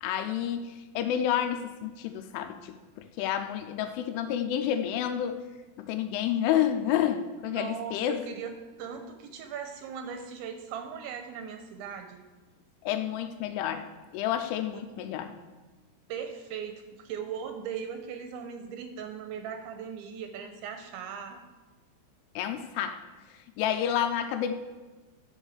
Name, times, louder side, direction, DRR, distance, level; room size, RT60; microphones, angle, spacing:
voice 1, 0.0-2.8 3.2-5.4 5.8-8.2 12.8-13.9 14.1-15.3 22.4-23.0 23.6-24.5, left 10 dB, 80° left, 8 dB, 3.0 m, -29 dB
voice 2, 7.5-8.5 8.8-12.2 14.7-14.8 16.1-21.4, right 7 dB, 80° right, 6 dB, 2.7 m, -39 dB
11.5 x 5.3 x 6.3 m, 1.2 s
omnidirectional pair, 5.8 m